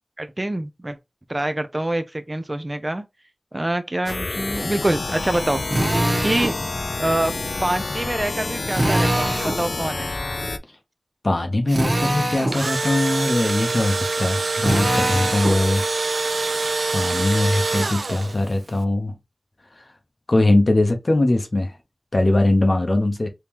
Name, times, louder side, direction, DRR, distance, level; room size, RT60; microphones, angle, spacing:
voice 1, 0.2-1.0 1.3-3.0 3.5-5.6 6.2-6.6 7.0-7.3 7.6-10.1, right 1 dB, 35° right, 0.5 m, -25 dB
sound 1, 4.1-10.6, left 3 dB, 75° left, 0.3 m, -28 dB
Drill, 5.7-6.6 8.7-9.6 11.7-12.6 14.6-15.6, right 1 dB, 55° right, 1.3 m, -22 dB
voice 2, 11.2-15.8 16.9-19.1 20.3-21.7 22.1-23.3, left 2 dB, 55° left, 0.7 m, -21 dB
Engine / Drill, 12.3-18.5, right 3 dB, 90° right, 0.4 m, -25 dB
3.5 x 2.9 x 2.9 m
wide cardioid pair, 50°, 0 cm